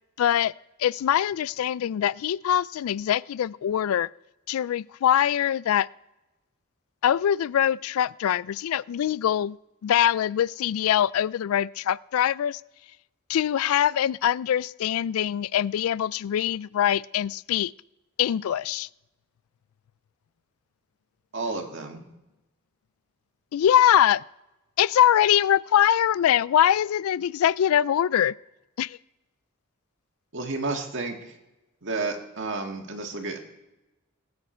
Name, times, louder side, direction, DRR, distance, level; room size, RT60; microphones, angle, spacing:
voice 1, 0.2-0.5 0.8-4.1 4.5-5.9 7.0-9.6 9.8-12.6 13.3-17.7 18.2-18.9 23.5-24.2 24.8-28.3 28.8-29.0, left 10 dB, 85° left, 22 dB, 0.3 m, -23 dB
voice 2, 21.3-22.0 30.3-31.3 31.8-33.4, right 3 dB, 60° right, 3 dB, 1.8 m, -31 dB
18.5 x 8.7 x 4.4 m, 1.0 s
head